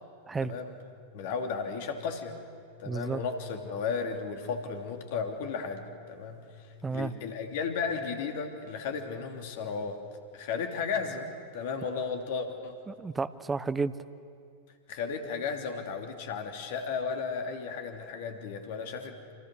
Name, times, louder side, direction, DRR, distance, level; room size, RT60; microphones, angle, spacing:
voice 1, 0.4-0.7 1.1-2.4 2.8-6.5 6.9-10.0 10.3-11.3 11.5-12.8 14.9-19.3, left 5 dB, 50° left, 4 dB, 2.9 m, -34 dB
voice 2, 2.8-3.2 6.8-7.1 12.9-13.9, right 4 dB, 15° right, 14 dB, 0.9 m, -31 dB
29.0 x 26.5 x 6.5 m, 2.3 s
figure-of-eight pair, 90°, 0 cm